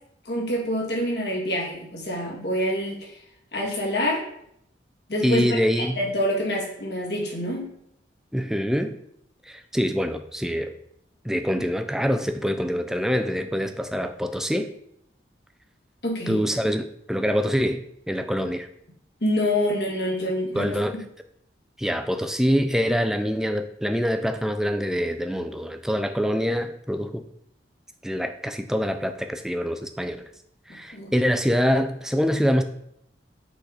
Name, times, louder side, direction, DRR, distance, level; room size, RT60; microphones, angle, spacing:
voice 1, 0.3-3.2 3.5-4.2 5.1-5.5 5.8-7.7 16.0-16.4 19.2-21.0 30.9-31.1, equal, 65° left, -2 dB, 1.8 m, -26 dB
voice 2, 5.2-6.0 8.3-8.9 9.5-10.7 11.2-14.7 16.3-18.7 20.5-21.0 21.8-27.2 28.0-30.2 30.7-32.6, equal, 5° right, 8 dB, 0.4 m, -25 dB
5.9 x 4.0 x 4.9 m, 0.73 s
head